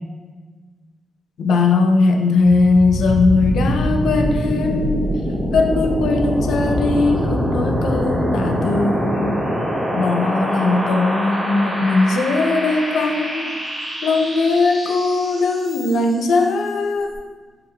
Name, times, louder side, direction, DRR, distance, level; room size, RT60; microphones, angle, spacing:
voice 1, 1.4-5.2 5.5-9.5 9.9-13.5 14.0-17.2, left 3 dB, 85° left, 4 dB, 0.4 m, -19 dB
sound 1, 2.4-16.2, equal, 25° right, 0.7 m, -24 dB
3.7 x 2.2 x 4.3 m, 1.4 s
cardioid pair, 100°, 0 cm